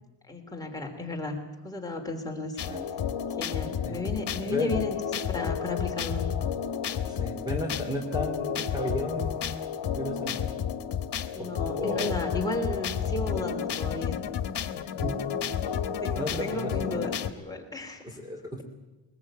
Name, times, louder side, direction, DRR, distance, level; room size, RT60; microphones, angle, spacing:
voice 1, 0.3-2.6 3.4-5.0 5.2-6.2 11.3-14.2 16.0-18.2, left 2 dB, 10° left, 1 dB, 3.1 m, -34 dB
sound 1, 2.6-17.3, left 8 dB, 60° left, 1.5 m, -31 dB
voice 2, 7.1-9.6 10.0-10.4 11.4-12.2 15.0-15.2 15.6-15.7 16.1-16.9 18.0-18.6, left 1 dB, 10° right, 3 dB, 2.7 m, -33 dB
22.0 x 20.5 x 8.7 m, 1.1 s
wide cardioid pair, 165°, 45 cm